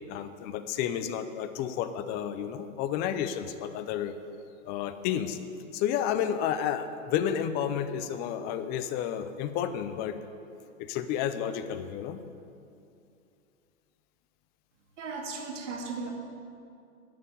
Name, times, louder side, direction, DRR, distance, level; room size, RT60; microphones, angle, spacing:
voice 1, 0.1-4.1 4.7-5.4 5.7-10.2 10.8-12.2, left 9 dB, 25° left, 10 dB, 0.5 m, -31 dB
voice 2, 15.0-16.1, right 4 dB, 65° right, 1 dB, 2.4 m, -36 dB
11.0 x 6.7 x 9.3 m, 2.6 s
hypercardioid pair, 130°, 40 cm